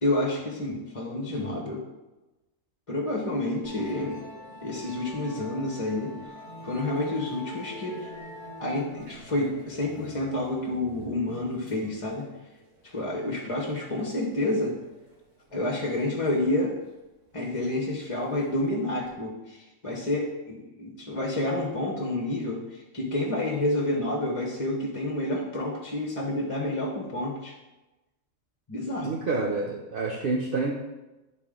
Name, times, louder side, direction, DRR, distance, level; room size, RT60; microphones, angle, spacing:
voice 1, 0.0-1.8 2.9-4.2 4.6-6.1 6.6-8.1 8.6-12.3 12.9-14.8 15.5-16.7 17.3-27.5 28.7-29.2, left 1 dB, 30° left, -1 dB, 1.0 m, -29 dB
Musical instrument, 3.6-19.1, left 1 dB, 75° right, 2.0 m, -46 dB
voice 2, 29.0-30.7, right 3 dB, 50° right, 0 dB, 0.8 m, -28 dB
11.0 x 4.2 x 3.7 m, 1.1 s
omnidirectional pair, 1.3 m